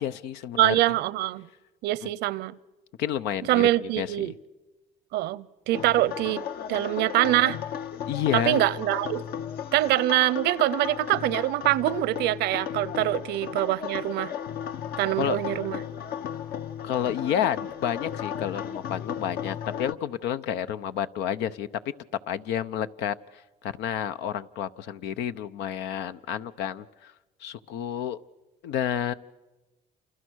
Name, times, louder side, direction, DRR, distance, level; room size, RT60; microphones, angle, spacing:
voice 1, 0.0-0.9 2.0-2.1 3.0-4.3 8.1-8.6 15.2-15.4 16.8-21.7 22.3-27.1 27.4-28.2 28.6-29.1, left 9 dB, 85° left, 0.9 m, -30 dB
voice 2, 0.6-1.5 1.8-2.6 3.5-4.3 5.1-6.4 6.7-7.6 8.3-9.2 9.7-14.3 15.0-15.8, right 16 dB, 85° right, 0.8 m, -24 dB
sound 1, 5.7-19.9, left 9 dB, 65° left, 1.1 m, -35 dB
29.0 x 28.0 x 6.4 m
cardioid pair, 110°, 17 cm